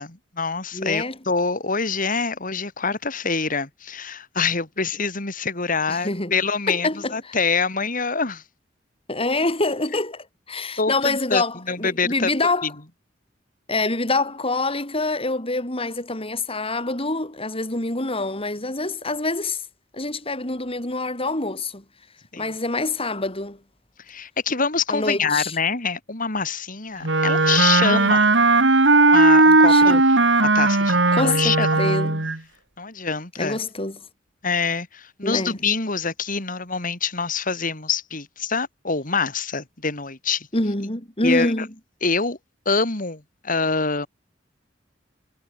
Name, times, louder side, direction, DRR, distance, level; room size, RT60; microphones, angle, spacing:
voice 1, 0.0-8.4 10.8-12.3 12.6-12.7 22.3-22.5 24.1-28.3 29.1-30.0 30.4-32.0 32.8-33.6 34.4-40.5 41.2-41.5 42.0-42.4 42.7-44.1, left 5 dB, 50° left, 3.9 m, -25 dB
voice 2, 0.7-1.2 5.9-6.3 6.7-7.4 9.1-12.7 13.7-19.6 19.9-21.8 22.4-23.6 24.9-25.6 27.9-28.2 29.7-30.0 31.1-32.3 33.4-34.0 35.2-35.6 40.5-41.7, left 2 dB, 30° left, 7.1 m, -26 dB
Wind instrument woodwind instrument, 27.0-32.4, right 3 dB, 80° right, 3.1 m, -17 dB
head